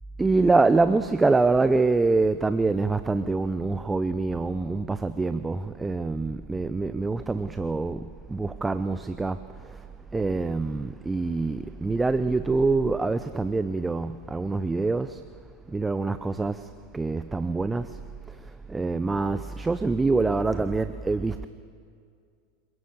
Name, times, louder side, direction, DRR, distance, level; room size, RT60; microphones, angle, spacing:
voice 1, 0.2-9.9 10.1-15.2 15.7-18.0 18.3-21.5, right 3 dB, 10° right, 0.7 m, -25 dB
27.0 x 21.5 x 7.5 m
figure-of-eight pair, 85°, 0 cm